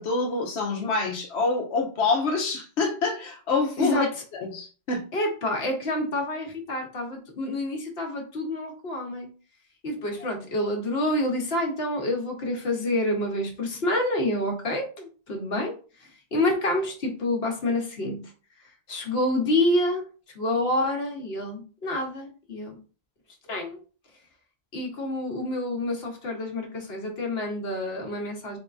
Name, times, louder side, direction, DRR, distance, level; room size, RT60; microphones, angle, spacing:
voice 1, 0.0-4.1 4.4-5.0, left 3 dB, 90° left, 0 dB, 1.0 m, -26 dB
voice 2, 3.8-4.1 5.1-9.3 9.8-18.3 18.9-20.1 20.3-22.8 23.5-23.8 24.7-28.6, left 1 dB, 70° left, 1 dB, 1.3 m, -28 dB
3.9 x 3.5 x 2.5 m, 0.36 s
omnidirectional pair, 1.1 m